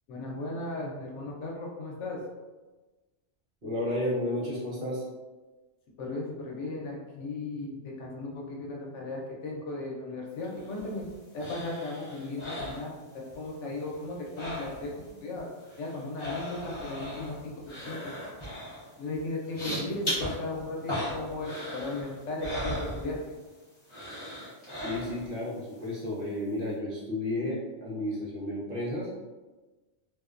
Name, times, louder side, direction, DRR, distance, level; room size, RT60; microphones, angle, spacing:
voice 1, 0.1-2.2 6.0-11.0 11.3-14.9 15.2-15.5 15.8-17.5 17.9-18.1 19.0-23.2, left 2 dB, 80° left, -2 dB, 0.9 m, -36 dB
voice 2, 3.6-5.0 24.8-29.1, left 1 dB, 55° right, -7 dB, 0.9 m, -32 dB
sound 1, 10.4-13.5 13.7-15.1 15.4-23.5 23.9-25.4 25.8-25.9, equal, 30° left, 0.7 m, -38 dB
2.5 x 2.1 x 2.4 m, 1.2 s
omnidirectional pair, 1.2 m